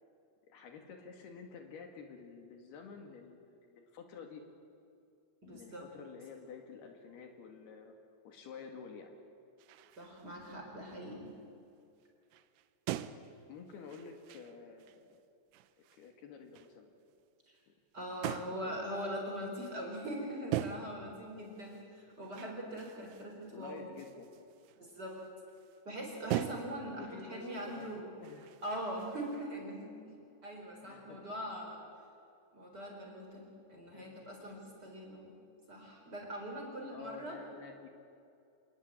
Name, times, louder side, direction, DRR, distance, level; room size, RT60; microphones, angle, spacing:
voice 1, 0.5-4.4 5.5-8.0 8.3-9.2 13.5-15.2 15.8-16.9 17.7-17.8 18.3-18.9 23.2-24.3 27.0-27.9 28.2-28.5 30.8-31.3 33.9-34.1 36.0-36.1 36.9-37.9, left 5 dB, 65° left, 4 dB, 3.8 m, -50 dB
voice 2, 5.4-5.8 10.0-11.3 17.5-17.6 17.9-23.9 24.7-25.2 25.8-28.1 28.6-30.2 30.4-31.8 32.5-35.3 35.7-37.4, equal, 25° right, 0 dB, 4.7 m, -42 dB
sound 1, 9.6-10.6 10.9-11.4 12.0-12.1 12.3-15.2 15.5-16.1 16.5-16.7 18.2-18.7 20.5-21.1 21.4-25.8 26.3-26.9 27.3-29.5, right 12 dB, 80° right, 2.8 m, -43 dB
26.5 x 20.5 x 8.9 m, 2.5 s
omnidirectional pair, 5.0 m